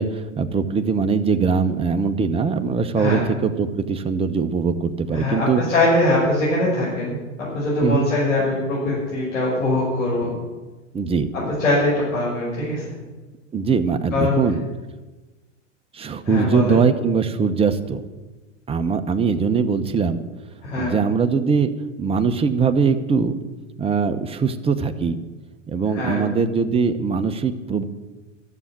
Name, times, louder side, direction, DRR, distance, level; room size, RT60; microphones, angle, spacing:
voice 1, 0.0-5.6 7.8-8.1 10.9-11.3 13.5-14.6 15.9-18.0 18.7-20.2 20.8-21.7 22.0-23.4 23.8-25.2 25.7-27.8, right 5 dB, 15° right, 8 dB, 0.9 m, -21 dB
voice 2, 3.0-3.3 5.1-7.2 7.5-10.3 11.6-12.8 14.1-14.4 16.2-16.8 20.6-20.9 25.9-26.2, left 2 dB, 90° left, -8 dB, 6.0 m, -22 dB
13.5 x 7.3 x 10.0 m, 1.2 s
hypercardioid pair, 110°, 38 cm